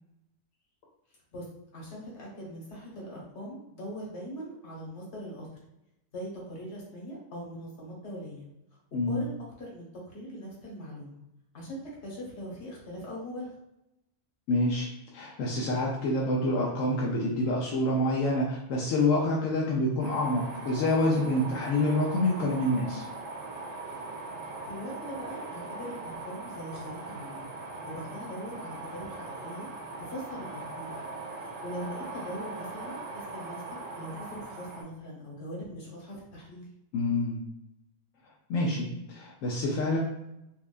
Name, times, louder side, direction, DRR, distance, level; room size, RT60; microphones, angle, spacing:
voice 1, 1.7-5.5 6.1-8.5 9.0-11.2 11.5-13.5 20.0-20.3 24.7-27.5 27.9-29.7 30.0-31.1 31.4-33.6 34.0-36.6, equal, 65° left, -4 dB, 1.4 m, -41 dB
voice 2, 8.9-9.3 14.5-23.0 36.9-37.4 38.5-40.0, left 1 dB, 85° left, -2 dB, 1.0 m, -27 dB
sound 1, 20.0-34.8, right 3 dB, 90° right, 1.2 m, -40 dB
4.4 x 2.3 x 2.4 m, 0.88 s
omnidirectional pair, 1.3 m